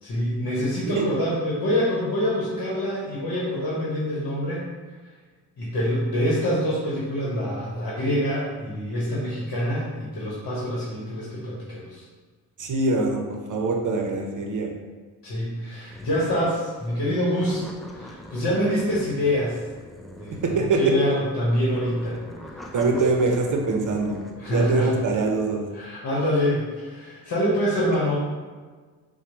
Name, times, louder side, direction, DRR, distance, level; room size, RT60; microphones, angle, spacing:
voice 1, 0.0-4.7 5.6-12.0 15.2-19.6 20.2-22.2 22.5-23.0 24.4-24.9 25.7-28.2, equal, 60° left, -6 dB, 1.1 m, -26 dB
voice 2, 12.6-14.7 20.4-20.9 22.7-24.2 24.5-25.6, right 3 dB, 50° right, 2 dB, 0.7 m, -23 dB
sound 1, 15.9-16.4 16.8-16.9 17.3-21.0 21.6-25.3, equal, ahead, 0.3 m, -43 dB
4.3 x 2.3 x 3.0 m, 1.4 s
supercardioid pair, 50°, 42 cm